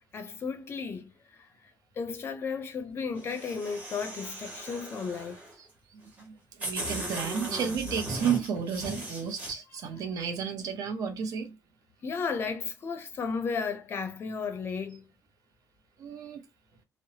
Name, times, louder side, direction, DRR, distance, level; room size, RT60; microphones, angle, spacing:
voice 1, 0.1-1.5 2.0-5.4 12.0-15.1, left 5 dB, 35° left, 0.5 m, -34 dB
sound 1, 3.2-5.5 6.2-6.3 6.6-9.5, right 1 dB, 25° right, 1.1 m, -37 dB
voice 2, 5.6-11.6 16.0-16.4, right 7 dB, 60° right, 0.6 m, -33 dB
3.1 x 2.0 x 2.7 m
cardioid pair, 180°, 7 cm